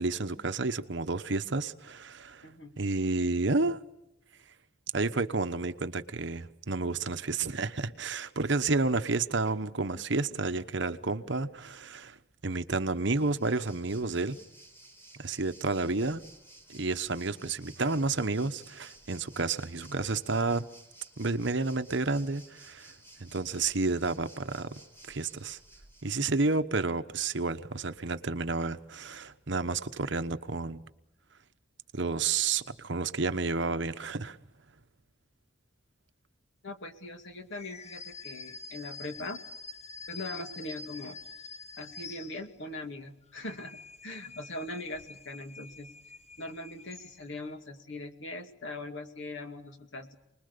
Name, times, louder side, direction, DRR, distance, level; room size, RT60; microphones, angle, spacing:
voice 1, 0.0-2.4 2.8-3.8 4.9-12.2 12.4-14.4 15.2-16.2 16.7-20.7 21.2-22.9 23.2-24.8 25.1-25.6 26.0-30.8 31.9-34.4, right 3 dB, 60° right, 1.1 m, -30 dB
voice 2, 2.4-2.7 36.6-39.4 40.1-41.2 41.8-45.9 46.4-50.2, left 2 dB, 65° left, 2.4 m, -41 dB
Waves surf, 13.0-26.3, right 1 dB, 10° left, 4.1 m, -55 dB
sound 1, 37.5-42.8 43.2-47.5, left 4 dB, 30° left, 1.4 m, -46 dB
29.0 x 20.5 x 6.8 m
head